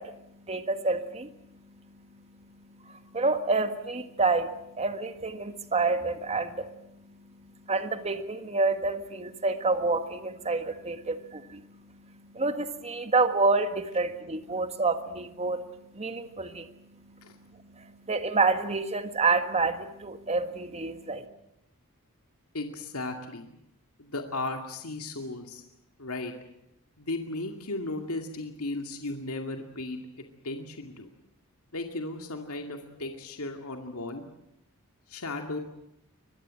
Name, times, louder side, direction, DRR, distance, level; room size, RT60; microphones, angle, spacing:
voice 1, 0.0-21.3, right 3 dB, 30° right, 9 dB, 1.7 m, -29 dB
voice 2, 22.5-23.5 24.0-25.6 26.0-26.3 27.0-31.1 31.7-34.2 35.1-35.6, left 2 dB, 75° left, 4 dB, 2.4 m, -35 dB
24.5 x 21.0 x 7.7 m, 0.83 s
head